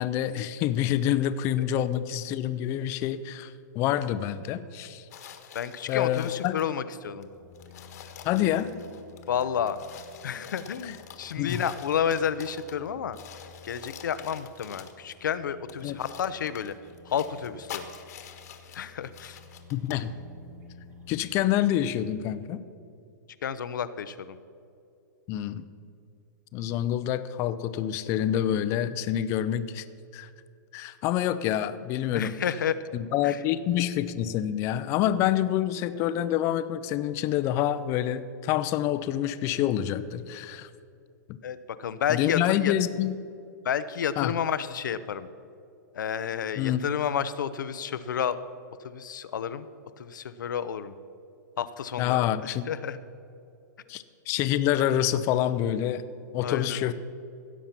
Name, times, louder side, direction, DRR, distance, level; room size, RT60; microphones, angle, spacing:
voice 1, 0.0-5.0 5.9-6.6 8.2-8.7 10.8-10.9 11.4-11.6 15.8-16.0 19.7-20.1 21.1-22.6 25.3-25.6 26.5-29.8 30.1-30.3 30.7-32.3 32.9-40.7 41.3-41.4 42.1-43.1 44.2-44.3 46.6-46.8 52.0-52.7 53.9-56.0 56.3-56.9, left 11 dB, 25° left, 13 dB, 0.5 m, -27 dB
sound 1, 5.1-6.7 7.2-7.3 7.5-12.9 13.1-15.2 15.7-20.1, left 8 dB, 60° left, 1.4 m, -46 dB
voice 2, 5.5-7.3 9.3-9.8 10.2-13.2 13.6-16.7 17.0-17.8 18.7-19.4 23.4-24.4 32.1-32.8 33.2-33.4 41.4-42.7 43.6-45.3 45.9-48.4 48.8-49.7 50.0-51.0 51.6-53.0 56.4-56.8, left 8 dB, 80° left, 13 dB, 0.7 m, -30 dB
sound 2, 7.3-21.7, left 4 dB, 20° right, 1.7 m, -52 dB
16.5 x 7.3 x 5.9 m, 2.6 s
hypercardioid pair, 155°, 10 cm